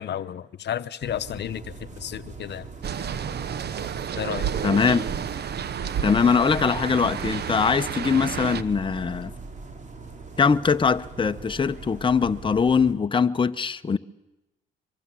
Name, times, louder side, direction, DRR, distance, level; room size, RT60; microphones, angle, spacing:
voice 1, 0.0-2.7 4.2-4.5, left 10 dB, 60° left, 0.9 m, -32 dB
sound 1, 1.0-12.9, right 4 dB, 40° right, 3.4 m, -42 dB
sound 2, 2.8-8.6, right 8 dB, 55° right, 1.1 m, -30 dB
voice 2, 4.6-5.0 6.0-9.3 10.4-14.0, left 5 dB, 25° left, 0.9 m, -22 dB
24.0 x 23.5 x 7.6 m
cardioid pair, 90°, 20 cm